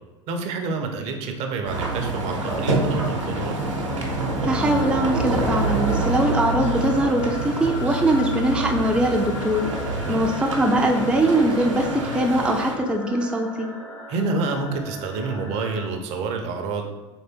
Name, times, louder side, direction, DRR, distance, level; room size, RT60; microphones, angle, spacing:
voice 1, 0.3-3.6 9.9-10.2 14.1-16.9, right 4 dB, 45° right, 5 dB, 0.6 m, -28 dB
sound 1, 1.6-12.7, right 2 dB, 80° right, 0.8 m, -26 dB
voice 2, 4.4-9.7 10.1-13.7, right 1 dB, 5° right, 1 dB, 0.4 m, -21 dB
sound 2, 4.6-15.9, left 2 dB, 75° left, 1.0 m, -39 dB
3.8 x 3.3 x 4.3 m, 1.2 s
figure-of-eight pair, 75°, 16 cm